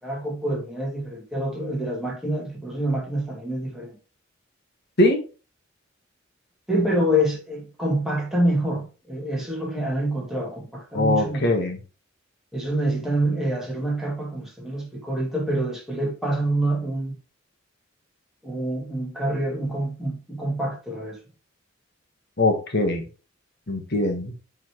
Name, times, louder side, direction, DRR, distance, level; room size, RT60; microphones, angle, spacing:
voice 1, 0.0-4.0 6.7-11.5 12.5-17.2 18.4-21.2, right 1 dB, ahead, 2.5 m, -26 dB
voice 2, 10.9-11.8 22.4-23.0 23.7-24.3, left 2 dB, 55° left, 1.5 m, -21 dB
7.3 x 5.7 x 3.1 m
head